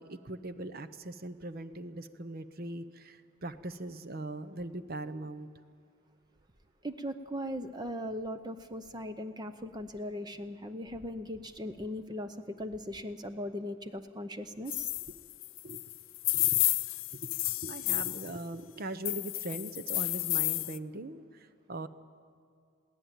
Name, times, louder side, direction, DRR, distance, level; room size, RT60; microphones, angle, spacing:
voice 1, 0.0-5.5 15.6-15.8 16.3-16.6 17.1-21.9, right 1 dB, 45° right, 12 dB, 0.9 m, -40 dB
voice 2, 6.8-14.9, equal, 20° right, 9 dB, 0.7 m, -39 dB
sound 1, 14.7-18.3 19.1-20.8, left 19 dB, 65° left, 0.6 m, -31 dB
22.0 x 17.0 x 9.0 m, 2.3 s
head